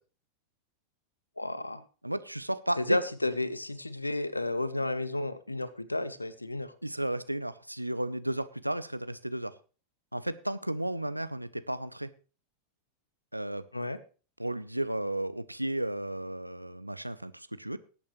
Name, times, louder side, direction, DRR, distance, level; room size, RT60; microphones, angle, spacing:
voice 1, 1.4-1.8 2.8-6.7 13.7-14.0, left 2 dB, 85° left, 17 dB, 0.9 m, -32 dB
voice 2, 2.0-3.0 6.8-9.5 10.1-12.1 13.3-13.6 14.4-17.8, right 1 dB, 85° right, 13 dB, 0.7 m, -33 dB
20.0 x 8.7 x 3.1 m, 0.36 s
figure-of-eight pair, 90°, 0 cm